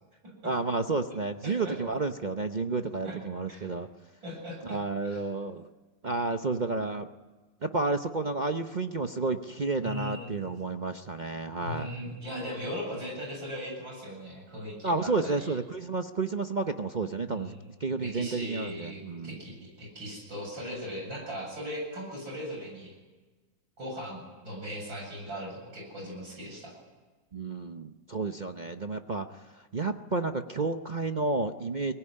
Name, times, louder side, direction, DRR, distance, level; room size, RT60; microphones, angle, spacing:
voice 1, 0.4-3.9 4.6-5.7 6.0-7.1 7.6-11.9 14.8-17.5 17.8-19.4 27.3-29.4 29.7-31.9, right 3 dB, 45° right, 7 dB, 0.5 m, -31 dB
voice 2, 1.4-1.8 3.0-3.2 3.5-3.6 4.2-4.8 5.0-5.2 9.8-10.5 11.6-15.5 17.3-17.7 17.9-22.9 23.8-26.7, equal, 75° right, -1 dB, 8.6 m, -39 dB
23.5 x 19.0 x 10.0 m, 1.3 s
omnidirectional pair, 2.1 m